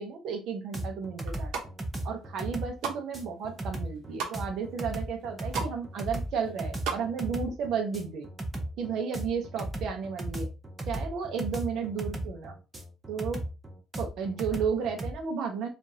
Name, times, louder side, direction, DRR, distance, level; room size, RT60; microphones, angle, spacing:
voice 1, 0.0-1.5 2.0-8.3 8.8-10.5 10.9-12.5 13.1-13.4 14.0-15.7, right 6 dB, 60° right, 3 dB, 0.7 m, -33 dB
sound 1, 0.7-15.2, right 1 dB, 15° right, 0.6 m, -36 dB
sound 2, 1.2-1.7 2.3-3.0 3.4-4.4 4.9-5.0 5.2-5.8 6.0-7.0 7.3-7.4, right 6 dB, 80° right, 1.0 m, -35 dB
4.7 x 2.5 x 2.7 m, 0.29 s
cardioid pair, 170°, 0 cm